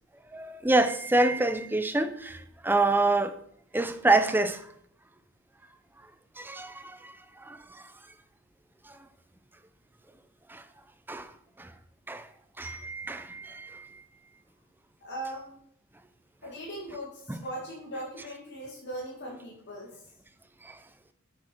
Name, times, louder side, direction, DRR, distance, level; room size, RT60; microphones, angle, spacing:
voice 1, 0.3-2.4 2.6-3.3 3.7-4.6 6.4-7.0 7.5-7.6 10.5-10.6 11.1-11.2 11.6-11.7 12.1-12.2 12.6-13.8 17.3-17.4, right 2 dB, 10° right, 0.6 m, -26 dB
voice 2, 15.0-15.5 16.4-19.9, right 1 dB, 55° left, 2.1 m, -39 dB
8.6 x 6.5 x 4.5 m
head